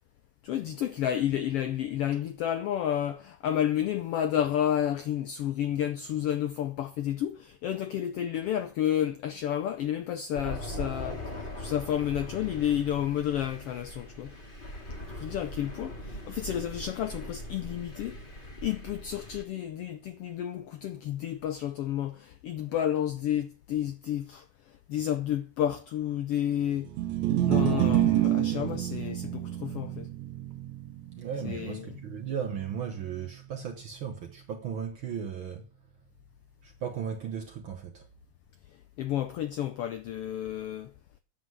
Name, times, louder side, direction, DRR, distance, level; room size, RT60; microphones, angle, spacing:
voice 1, 0.4-14.3 15.1-26.9 27.5-30.1 31.4-32.0 38.7-40.9, left 10 dB, 80° left, 1.3 m, -31 dB
Thunder, 10.3-19.4, left 1 dB, 20° left, 1.7 m, -40 dB
sound 1, 26.9-33.2, right 13 dB, 75° right, 2.1 m, -29 dB
voice 2, 31.2-35.7 36.6-38.1, right 7 dB, 60° right, 1.4 m, -36 dB
9.6 x 7.5 x 7.3 m
omnidirectional pair, 3.5 m